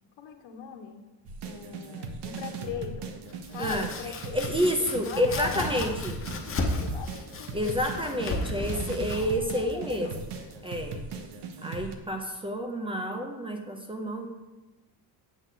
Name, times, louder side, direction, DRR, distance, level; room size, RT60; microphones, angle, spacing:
voice 1, 0.2-1.0 1.4-3.1 3.5-4.4 5.0-6.1 6.4-8.3 8.5-8.8 9.4-10.1, left 8 dB, 80° left, 4 dB, 1.3 m, -41 dB
sound 1, 1.3-12.0, right 4 dB, 65° right, 1.1 m, -39 dB
Domestic sounds home sounds, 3.3-11.0, left 2 dB, 30° left, 0.9 m, -36 dB
voice 2, 3.6-6.1 7.5-10.1 10.6-11.0 11.6-14.3, equal, 10° right, 4 dB, 0.5 m, -29 dB
8.2 x 7.6 x 3.9 m, 1.1 s
cardioid pair, 170°, 44 cm